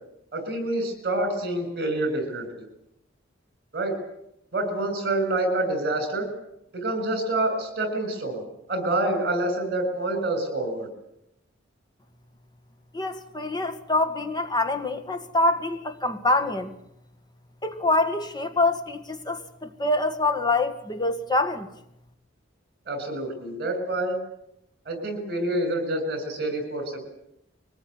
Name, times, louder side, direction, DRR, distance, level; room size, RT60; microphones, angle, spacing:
voice 1, 0.3-2.5 3.7-4.0 4.5-6.3 6.7-8.4 8.7-10.9 22.9-24.2 24.9-27.0, right 2 dB, 55° right, 8 dB, 7.1 m, -27 dB
voice 2, 12.9-16.7 17.6-21.7, left 2 dB, 20° left, 7 dB, 1.9 m, -25 dB
23.5 x 19.0 x 9.6 m, 0.81 s
head